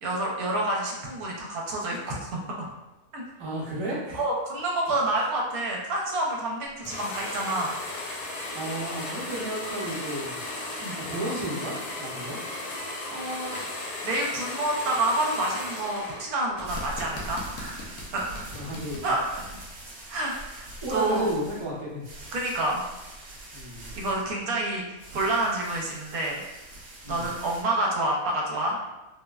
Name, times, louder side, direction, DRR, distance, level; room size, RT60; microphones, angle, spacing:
voice 1, 0.0-2.7 3.1-3.2 4.1-7.7 10.8-11.0 13.1-13.6 14.0-18.5 19.0-19.6 20.1-21.3 22.3-22.8 23.9-26.4 27.1-28.8, right 2 dB, 75° right, -2 dB, 1.1 m, -28 dB
voice 2, 3.4-4.2 8.5-12.4 18.5-19.1 19.8-20.1 20.8-22.1 23.5-23.9 27.0-27.3, right 1 dB, 30° right, -7 dB, 0.5 m, -33 dB
sound 1, 6.9-16.3 16.6-19.1, left 2 dB, 90° left, 1.1 m, -36 dB
sound 2, 16.5-27.6, right 1 dB, 55° right, 0.9 m, -43 dB
3.6 x 2.1 x 2.3 m, 1.0 s
omnidirectional pair, 1.6 m